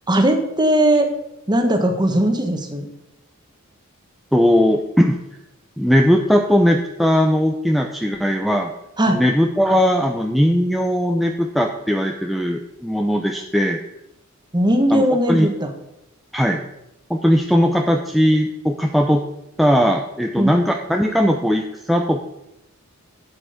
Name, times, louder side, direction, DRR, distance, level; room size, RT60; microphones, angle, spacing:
voice 1, 0.1-1.1 1.5-2.9 9.0-9.2 14.5-15.7 20.4-20.5, right 1 dB, 20° right, 5 dB, 1.5 m, -18 dB
voice 2, 4.3-5.2 5.8-8.7 9.1-13.8 14.9-15.5 16.3-16.6 17.1-19.2 19.6-22.3, equal, ahead, 2 dB, 0.7 m, -18 dB
12.5 x 8.7 x 5.1 m, 0.86 s
head